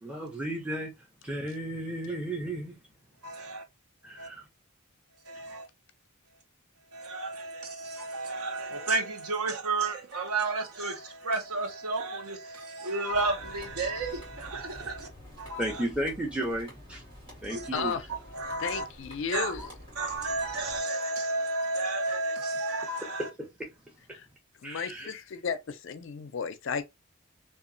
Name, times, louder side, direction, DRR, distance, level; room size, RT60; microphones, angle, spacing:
voice 1, 0.0-0.9 1.2-2.8 3.4-3.5 4.0-4.4 5.3-5.5 14.8-14.9 15.6-17.0 17.4-18.0 19.6-19.7 23.2-23.3 24.6-25.1, right 1 dB, 5° right, 0.6 m, -34 dB
voice 2, 3.2-3.6 4.2-4.3 5.2-5.7 6.9-15.1 15.4-15.8 17.5-17.9 18.3-18.9 19.3-19.5 20.0-23.3, right 3 dB, 85° right, 0.7 m, -32 dB
sound 1, 13.1-20.8, equal, 25° right, 1.6 m, -48 dB
voice 3, 17.7-18.0 18.6-19.7 24.1-24.3 24.6-26.8, left 6 dB, 55° left, 0.4 m, -33 dB
2.8 x 2.3 x 2.5 m
head